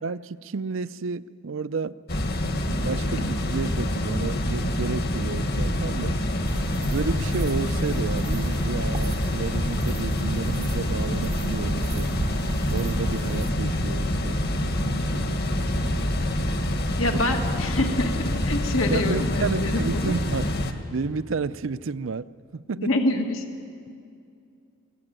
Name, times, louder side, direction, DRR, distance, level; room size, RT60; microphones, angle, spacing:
voice 1, 0.0-2.0 2.7-6.2 6.9-12.2 12.7-15.6 18.9-22.9, right 4 dB, 75° right, 15 dB, 0.5 m, -31 dB
sound 1, 2.1-20.7, left 1 dB, 50° left, 1.6 m, -26 dB
sound 2, 6.4-13.5, right 1 dB, 25° right, 0.6 m, -34 dB
voice 2, 17.0-20.1 22.8-23.4, left 2 dB, 85° left, 3 dB, 2.1 m, -26 dB
23.5 x 17.0 x 9.0 m, 2.4 s
head